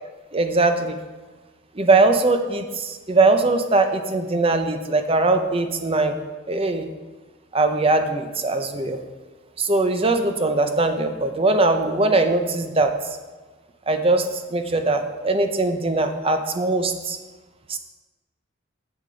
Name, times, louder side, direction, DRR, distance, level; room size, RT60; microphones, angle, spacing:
voice 1, 0.3-1.0 1.7-6.2 6.5-6.9 7.5-9.0 9.6-12.9 13.9-17.2 17.7-17.8, right 2 dB, 25° right, 6 dB, 0.6 m, -21 dB
7.6 x 7.1 x 5.1 m, 1.3 s
head